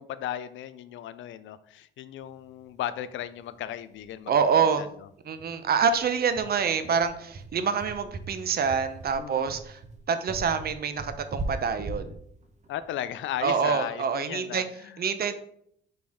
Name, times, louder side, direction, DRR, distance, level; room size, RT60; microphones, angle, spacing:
voice 1, 0.0-4.3 4.8-4.9 9.1-9.5 12.7-15.0, left 11 dB, 75° left, 14 dB, 0.5 m, -36 dB
sound 1, 3.5-3.6 3.9-4.0 4.3-4.5 4.8-4.9 5.4-13.8, right 2 dB, 35° right, 1.1 m, -39 dB
voice 2, 4.3-4.9 5.3-9.8 10.1-12.2 13.4-14.6 15.0-15.3, right 6 dB, 50° right, 10 dB, 0.7 m, -26 dB
6.3 x 4.4 x 3.6 m, 0.68 s
cardioid pair, 90°, 20 cm